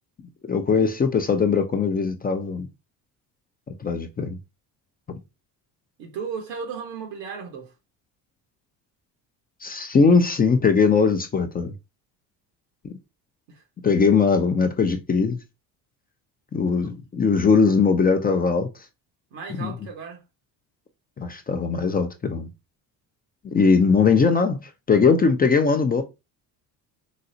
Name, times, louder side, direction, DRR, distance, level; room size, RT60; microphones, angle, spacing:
voice 1, 0.4-2.7 3.8-4.4 5.1-5.2 9.6-11.7 13.8-15.4 16.5-18.7 19.6-19.7 21.2-22.5 23.4-24.6 24.9-26.0, left 5 dB, 20° left, 0.4 m, -20 dB
voice 2, 6.0-7.7 13.5-13.6 16.8-16.9 19.3-20.2, right 6 dB, 80° right, 1.1 m, -35 dB
3.9 x 2.0 x 2.6 m
supercardioid pair, 80°, 43 cm